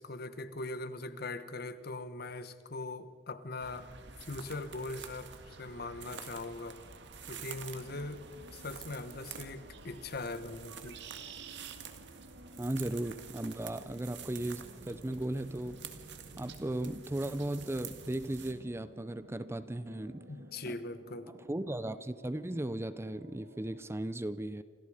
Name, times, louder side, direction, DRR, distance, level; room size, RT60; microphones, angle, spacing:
voice 1, 0.0-3.9 4.2-6.8 7.3-8.2 8.5-11.0 20.3-21.3, left 2 dB, 55° left, 12 dB, 1.2 m, -41 dB
sound 1, 3.6-18.5, right 6 dB, 70° right, 1.8 m, -48 dB
sound 2, 7.7-23.9, right 2 dB, 85° right, 1.5 m, -55 dB
voice 2, 12.6-15.8 16.4-20.2 20.7-20.8 21.5-24.6, right 1 dB, 15° right, 14 dB, 0.5 m, -36 dB
28.5 x 25.5 x 5.0 m, 2.1 s
head